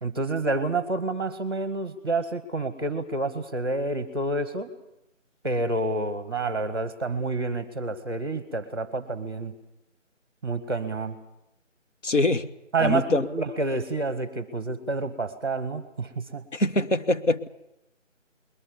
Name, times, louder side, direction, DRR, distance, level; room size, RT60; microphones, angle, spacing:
voice 1, 0.0-4.7 5.4-9.6 10.4-11.2 12.7-16.4, right 2 dB, 20° right, 13 dB, 1.1 m, -28 dB
voice 2, 12.0-12.5 12.8-13.3 16.5-17.5, left 2 dB, 65° left, 8 dB, 1.5 m, -23 dB
21.5 x 20.5 x 8.0 m, 0.87 s
figure-of-eight pair, 165°, 38 cm